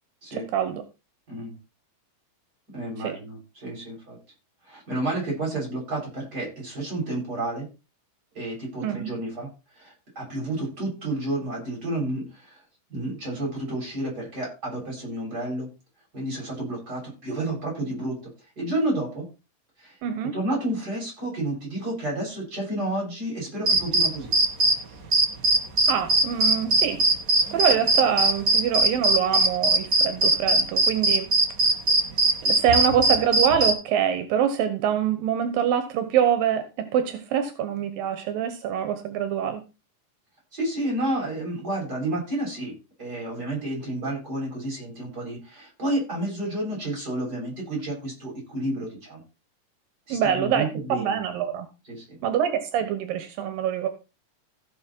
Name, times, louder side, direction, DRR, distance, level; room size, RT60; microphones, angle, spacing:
voice 1, 0.3-0.8 3.0-3.2 8.8-9.1 20.0-20.3 25.9-27.0 27.5-31.3 32.4-39.6 50.1-51.7 52.2-53.9, right 9 dB, 85° right, 9 dB, 2.9 m, -25 dB
voice 2, 2.7-4.2 4.7-7.7 8.3-9.5 9.8-12.6 12.9-15.7 16.1-18.2 18.6-19.2 19.8-19.9 20.3-24.3 40.5-49.2 50.1-51.0 51.9-52.2, right 1 dB, 25° right, -3 dB, 8.5 m, -30 dB
sound 1, 23.7-24.8 25.1-33.7, right 2 dB, 45° right, 1.1 m, -20 dB
16.0 x 6.5 x 4.5 m, 0.30 s
omnidirectional pair, 3.9 m